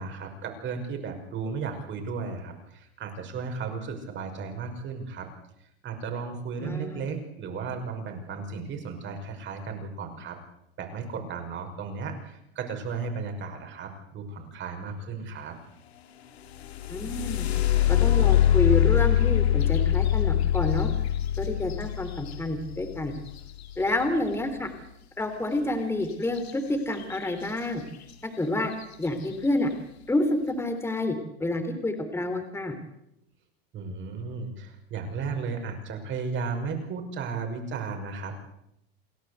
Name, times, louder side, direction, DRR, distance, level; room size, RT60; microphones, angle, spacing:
voice 1, 0.0-5.3 5.8-10.4 10.8-15.6 33.7-38.4, right 5 dB, 35° right, 5 dB, 5.8 m, -35 dB
voice 2, 6.6-7.1 16.9-17.5 17.9-20.9 21.4-23.1 23.8-24.7 25.2-27.8 28.2-28.7 29.0-29.7 30.1-31.1 31.4-32.7, left 1 dB, 10° left, 7 dB, 3.3 m, -28 dB
sound 1, 16.5-24.3 26.4-26.5 26.9-27.5 28.1-28.2 28.7-29.1, left 11 dB, 85° left, 2.3 m, -24 dB
28.0 x 12.0 x 8.2 m, 0.80 s
supercardioid pair, 115°, 31 cm